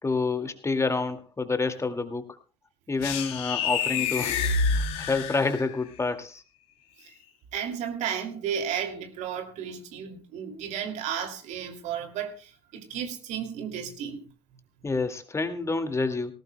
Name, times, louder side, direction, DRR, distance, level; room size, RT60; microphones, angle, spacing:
voice 1, 0.0-2.2 2.9-4.4 4.7-6.4 14.8-16.3, left 3 dB, 20° left, 7 dB, 2.1 m, -28 dB
sound 1, 3.0-5.9, left 5 dB, 70° left, 3.0 m, -28 dB
voice 2, 7.5-14.2, right 8 dB, 60° right, 5 dB, 2.6 m, -33 dB
18.5 x 18.0 x 2.2 m, 0.34 s
hypercardioid pair, 60°, 14 cm